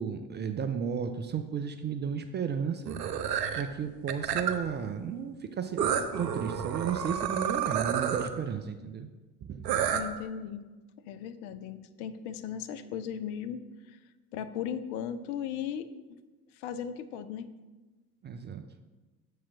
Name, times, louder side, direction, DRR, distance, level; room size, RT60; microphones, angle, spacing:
voice 1, 0.0-3.0 3.5-9.1 9.4-9.7 18.2-18.6, right 7 dB, 25° right, 8 dB, 0.4 m, -33 dB
sound 1, 2.9-3.6 4.1-4.7 5.8-8.3 9.7-10.0, right 8 dB, 75° right, 0.7 m, -30 dB
voice 2, 9.9-10.6 11.1-13.6 14.3-16.2 16.6-17.5, left 8 dB, 60° left, 11 dB, 0.6 m, -37 dB
7.1 x 4.7 x 5.9 m, 1.2 s
figure-of-eight pair, 55°, 48 cm